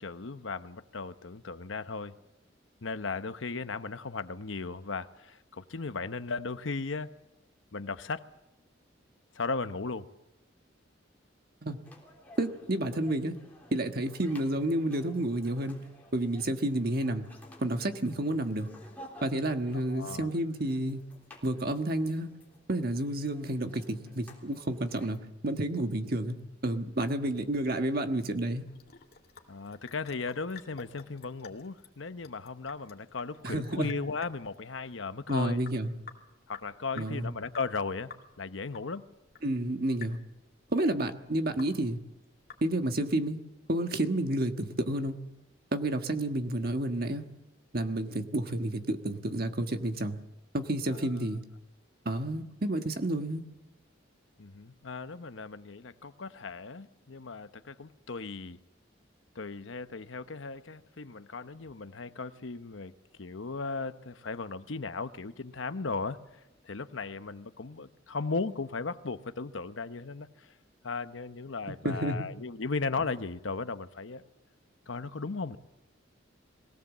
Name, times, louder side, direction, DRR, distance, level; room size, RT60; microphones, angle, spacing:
voice 1, 0.0-2.1 2.8-7.1 7.7-8.2 9.3-10.1 19.9-20.3 29.5-35.6 36.5-39.0 50.9-51.3 54.4-58.6 59.3-62.9 63.2-70.5 70.8-74.3 74.9-75.6, left 4 dB, 90° left, 0.9 m, -36 dB
sound 1, 11.8-25.2, left 1 dB, 10° left, 3.4 m, -54 dB
voice 2, 12.4-13.4 13.7-15.8 16.1-17.3 17.6-18.7 19.2-21.0 21.4-22.3 22.7-25.2 25.4-26.4 26.6-28.6 33.4-33.9 35.3-35.9 37.0-37.3 39.4-40.2 40.7-42.0 42.6-43.4 43.7-45.2 45.7-47.3 47.7-50.2 50.5-51.4 52.0-53.4 71.8-72.2, right 1 dB, 50° right, 1.5 m, -30 dB
Sink (filling or washing) / Drip, 28.6-43.0, left 6 dB, 50° left, 2.4 m, -52 dB
22.5 x 17.5 x 7.4 m
head